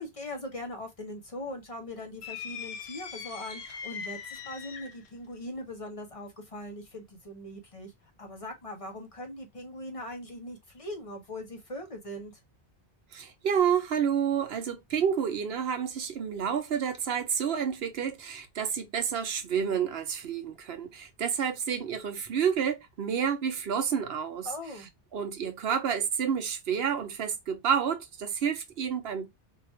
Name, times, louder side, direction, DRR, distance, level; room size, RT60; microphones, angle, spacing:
voice 1, 0.0-7.9 8.2-12.3 24.4-24.9, left 1 dB, 35° left, 0.9 m, -40 dB
sound 1, 2.2-5.1, left 6 dB, 85° left, 0.9 m, -40 dB
voice 2, 13.1-24.5 25.1-29.3, right 7 dB, 75° right, 0.9 m, -29 dB
2.9 x 2.5 x 4.2 m
omnidirectional pair, 1.0 m